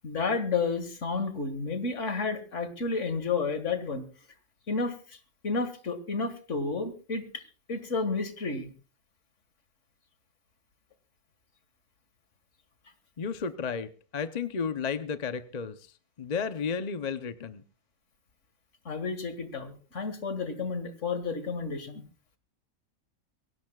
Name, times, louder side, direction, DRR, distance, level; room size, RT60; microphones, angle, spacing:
voice 1, 0.0-4.1 4.7-5.2 5.4-7.4 7.7-8.7 18.9-22.1, left 4 dB, 55° left, 10 dB, 2.1 m, -31 dB
voice 2, 13.2-17.6, left 6 dB, 35° left, 10 dB, 0.7 m, -33 dB
23.0 x 17.0 x 2.4 m, 0.36 s
omnidirectional pair, 1.5 m